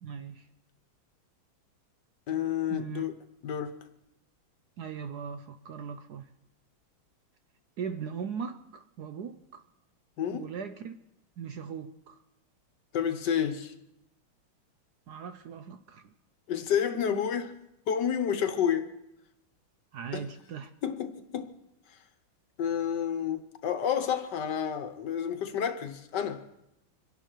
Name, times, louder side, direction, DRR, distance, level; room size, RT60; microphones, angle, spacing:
voice 1, 0.0-0.5 2.7-3.0 4.8-6.3 7.8-9.6 10.3-10.9 11.4-12.2 15.1-16.1 19.9-20.7, right 6 dB, 65° right, 1.1 m, -39 dB
voice 2, 2.3-3.1 3.4-3.8 10.2-10.5 12.9-13.7 16.5-18.9 20.1-20.2 20.8-21.6 22.6-26.4, left 8 dB, 65° left, 1.4 m, -30 dB
26.0 x 11.0 x 4.5 m
omnidirectional pair, 2.2 m